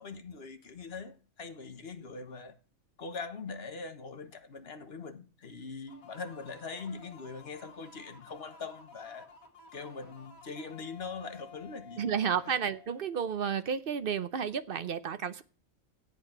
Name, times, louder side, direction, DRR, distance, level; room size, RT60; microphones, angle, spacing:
voice 1, 0.0-2.6 3.0-9.3 9.7-12.2 12.4-12.6, left 4 dB, 50° left, 1.3 m, -42 dB
sound 1, 5.9-13.5, left 4 dB, 90° left, 2.2 m, -54 dB
voice 2, 12.0-15.4, right 7 dB, 50° right, 0.8 m, -32 dB
13.5 x 8.6 x 5.9 m
omnidirectional pair, 1.4 m